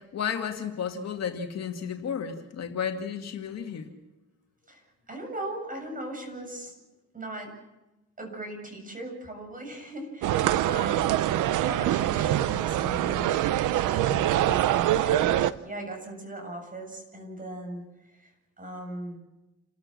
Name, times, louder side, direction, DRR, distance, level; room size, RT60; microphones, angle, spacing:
voice 1, 0.0-3.9, left 7 dB, 60° left, 4 dB, 2.3 m, -33 dB
voice 2, 4.7-6.7 7.1-7.5 8.2-11.3 11.6-13.3 13.7-17.8 18.1-18.3 18.6-19.2, right 1 dB, 25° right, 3 dB, 7.4 m, -38 dB
sound 1, 10.2-15.5, right 13 dB, 85° right, 0.8 m, -24 dB
29.5 x 14.0 x 7.5 m, 1.0 s
cardioid pair, 90°, 30 cm